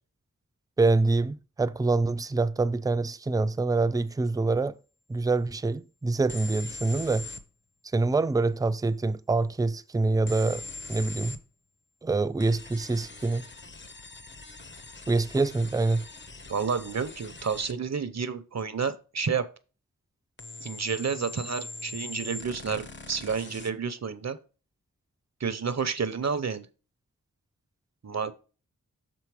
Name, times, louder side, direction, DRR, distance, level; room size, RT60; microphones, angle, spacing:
voice 1, 0.8-4.8 5.1-7.3 7.9-10.6 10.9-11.4 12.0-13.5 15.1-16.0, right 3 dB, 10° right, 0.3 m, -25 dB
sound 1, 6.3-7.5 10.3-11.4 12.4-17.8 20.4-23.7, left 3 dB, 35° left, 0.7 m, -42 dB
voice 2, 16.5-19.5 20.6-24.4 25.4-26.7 28.0-28.3, right 5 dB, 50° right, 0.7 m, -30 dB
6.9 x 4.1 x 4.7 m
wide cardioid pair, 80°, 34 cm